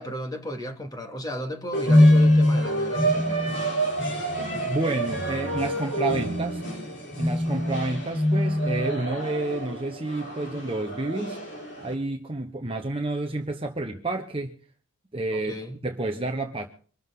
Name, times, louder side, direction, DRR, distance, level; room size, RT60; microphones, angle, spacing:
voice 1, 0.0-3.5 15.3-15.8, left 1 dB, 15° left, 2.6 m, -35 dB
sound 1, 1.7-11.9, equal, 50° left, 5.4 m, -24 dB
voice 2, 4.7-6.6 7.1-11.4 11.8-14.6 15.1-16.7, right 2 dB, 25° right, 1.2 m, -30 dB
25.0 x 13.5 x 3.9 m
head